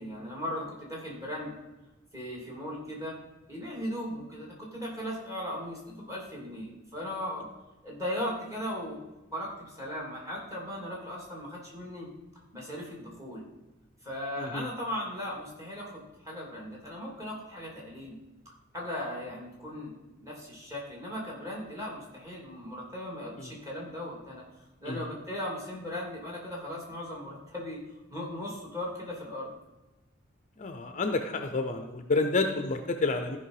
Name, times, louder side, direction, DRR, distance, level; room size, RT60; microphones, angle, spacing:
voice 1, 0.0-1.5 2.1-3.1 3.5-7.5 7.8-9.0 9.3-12.1 12.5-13.4 14.0-18.2 18.7-19.9 20.2-24.4 24.8-29.5, equal, 15° right, -3 dB, 3.1 m, -37 dB
voice 2, 14.4-14.7 23.4-23.5 24.9-25.0 30.6-33.4, left 3 dB, 40° left, 7 dB, 0.6 m, -29 dB
14.0 x 5.4 x 4.9 m, 1.1 s
head